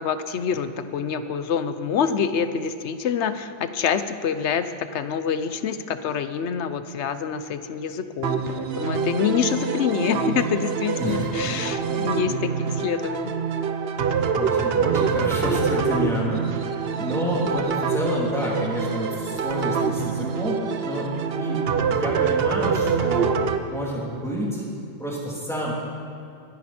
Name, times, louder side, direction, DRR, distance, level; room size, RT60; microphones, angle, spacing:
voice 1, 0.0-13.3, left 7 dB, 85° left, 11 dB, 1.0 m, -26 dB
sound 1, 8.2-23.6, right 6 dB, 65° right, 0.9 m, -25 dB
voice 2, 11.0-11.6 12.5-12.6 14.3-23.4 23.7-24.6 25.0-25.7, equal, ahead, -5 dB, 3.2 m, -29 dB
22.5 x 11.0 x 4.3 m, 2.5 s
omnidirectional pair, 1.1 m